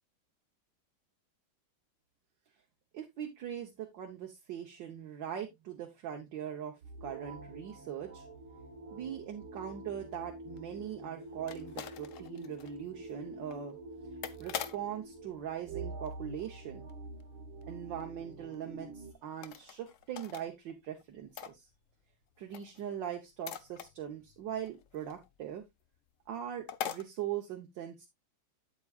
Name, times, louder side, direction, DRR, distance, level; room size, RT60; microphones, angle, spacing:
voice 1, 2.9-8.2 8.9-13.8 14.4-16.8 17.7-21.7 22.4-25.6 26.3-28.1, right 9 dB, 65° right, 2 dB, 1.7 m, -41 dB
sound 1, 6.8-19.1, right 2 dB, 85° right, 2.2 m, -47 dB
sound 2, 10.0-16.6 16.9-17.3 17.6-17.7 18.0-18.1 18.5-18.6 19.3-20.4 20.7-22.1 22.4-25.6 25.9-26.0 26.3-26.4 26.7-27.0, left 9 dB, 70° left, 0.7 m, -44 dB
8.4 x 8.4 x 2.4 m, 0.18 s
omnidirectional pair, 2.2 m